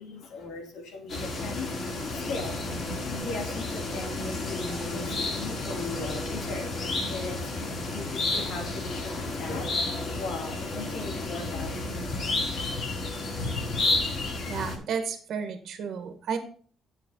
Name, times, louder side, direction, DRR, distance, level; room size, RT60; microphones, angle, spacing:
voice 1, 0.0-12.3, left 3 dB, 85° left, 2 dB, 2.6 m, -39 dB
sound 1, 1.1-14.8, left 2 dB, 60° left, 3.9 m, -31 dB
voice 2, 14.4-16.4, right 6 dB, 70° right, 6 dB, 1.6 m, -32 dB
9.4 x 7.6 x 3.9 m, 0.43 s
cardioid pair, 90°, 0 cm